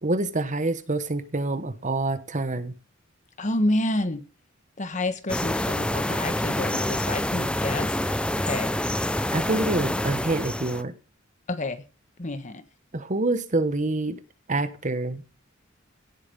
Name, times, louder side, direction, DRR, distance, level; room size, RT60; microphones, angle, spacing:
voice 1, 0.0-2.7 9.3-10.9 12.9-14.2 14.5-15.3, right 2 dB, 40° right, 12 dB, 1.2 m, -26 dB
voice 2, 3.4-4.2 4.8-7.9 8.5-8.7 11.5-11.8 12.2-12.6, left 1 dB, 35° left, 11 dB, 1.4 m, -28 dB
sound 1, 5.3-10.8, left 1 dB, 5° left, 0.6 m, -27 dB
17.5 x 8.1 x 5.4 m, 0.34 s
head